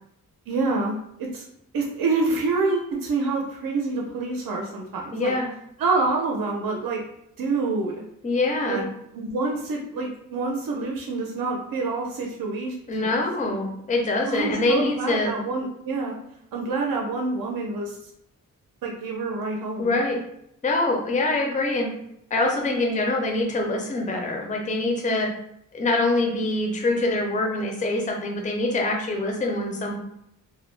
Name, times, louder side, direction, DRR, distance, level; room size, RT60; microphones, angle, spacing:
voice 1, 0.5-1.4 1.7-5.3 5.8-7.0 7.4-7.9 8.7-8.8 9.1-12.7 13.0-13.1 14.3-16.1 16.5-18.0 18.8-20.0, right 3 dB, 75° right, -1 dB, 0.5 m, -27 dB
voice 2, 5.1-5.5 8.2-8.9 12.9-15.3 19.8-20.2 20.6-21.9 22.3-25.3 25.7-30.0, left 2 dB, 25° left, 1 dB, 0.4 m, -24 dB
2.3 x 2.0 x 3.1 m, 0.77 s
wide cardioid pair, 160°, 34 cm